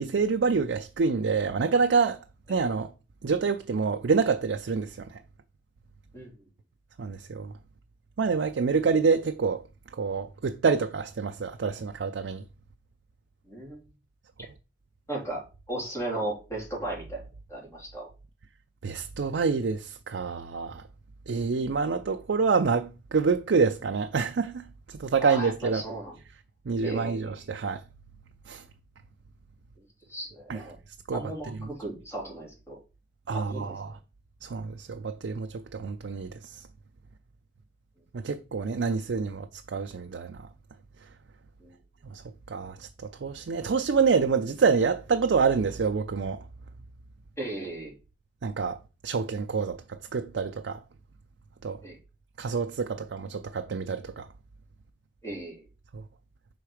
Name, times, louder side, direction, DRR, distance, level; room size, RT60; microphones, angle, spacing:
voice 1, 0.0-2.2 2.5-2.9 3.2-5.0 7.0-7.5 8.2-9.6 9.9-12.4 18.8-20.8 21.3-25.8 26.7-27.8 28.5-28.6 30.5-30.6 31.1-31.2 33.3-34.0 34.4-36.6 38.1-40.4 42.1-42.2 42.5-46.4 48.4-50.8 51.6-51.8 52.4-54.3 55.9-56.0, right 5 dB, 85° right, 0.5 m, -27 dB
voice 2, 13.5-13.8 15.1-17.2 17.5-18.1 25.2-26.2 26.8-27.4 29.8-29.9 30.1-30.8 31.1-32.8 33.3-33.8 41.6-41.7 47.4-47.9 51.8-52.0 55.2-55.7, right 1 dB, 15° left, 3.4 m, -36 dB
5.6 x 3.9 x 4.8 m
head